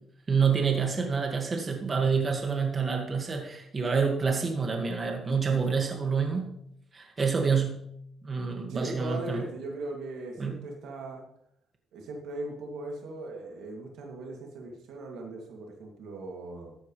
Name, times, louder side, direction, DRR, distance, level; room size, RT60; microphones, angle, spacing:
voice 1, 0.3-6.5 6.9-7.8 8.2-9.5 10.4-10.7, right 5 dB, 35° right, 2 dB, 1.9 m, -27 dB
voice 2, 8.7-11.2 11.9-16.8, right 2 dB, 85° right, 0 dB, 2.6 m, -39 dB
13.5 x 9.4 x 3.3 m, 0.72 s
cardioid pair, 90°, 0 cm